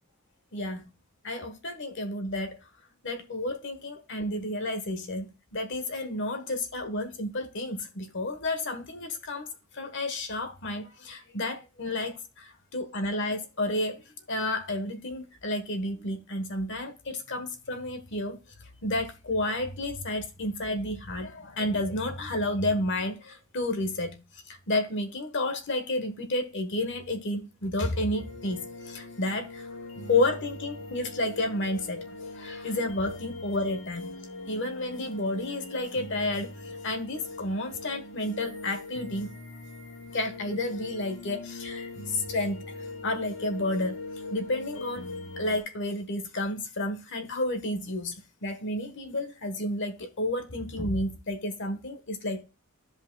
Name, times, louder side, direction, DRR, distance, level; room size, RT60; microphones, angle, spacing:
voice 1, 0.5-0.9 1.2-2.6 3.0-9.5 9.7-14.0 14.3-18.4 18.8-24.2 24.5-29.7 30.1-32.1 32.3-34.2 34.5-36.5 36.8-39.3 40.1-42.7 43.0-43.9 44.3-45.0 45.4-48.2 48.4-52.4, left 1 dB, 60° left, 1.3 m, -31 dB
sound 1, 28.1-45.6, left 2 dB, 85° left, 2.6 m, -41 dB
13.5 x 5.2 x 2.3 m
head